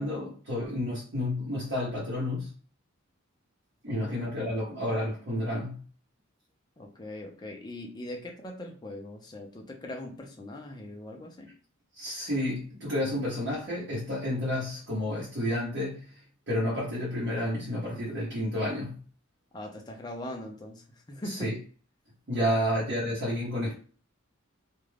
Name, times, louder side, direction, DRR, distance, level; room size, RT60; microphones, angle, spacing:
voice 1, 0.0-2.5 3.8-5.8 11.9-16.2 16.5-18.9 21.2-21.5 22.3-23.8, left 1 dB, 55° right, 0.9 m, -30 dB
voice 2, 3.9-4.3 6.8-11.5 19.5-21.5 22.3-22.4, left 1 dB, 20° left, 0.5 m, -41 dB
2.4 x 2.2 x 3.2 m
head